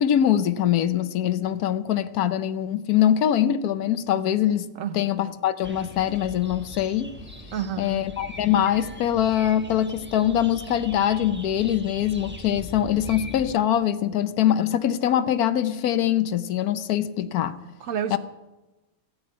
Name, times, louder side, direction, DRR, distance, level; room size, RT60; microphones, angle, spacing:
voice 1, 0.0-4.7 4.9-7.1 7.8-17.5 18.1-18.2, left 10 dB, 85° left, 1.2 m, -23 dB
sound 1, 5.6-13.5, left 1 dB, 10° right, 1.1 m, -41 dB
voice 2, 7.5-8.0 17.8-18.2, right 8 dB, 65° right, 1.1 m, -30 dB
15.0 x 8.0 x 9.3 m
omnidirectional pair, 1.6 m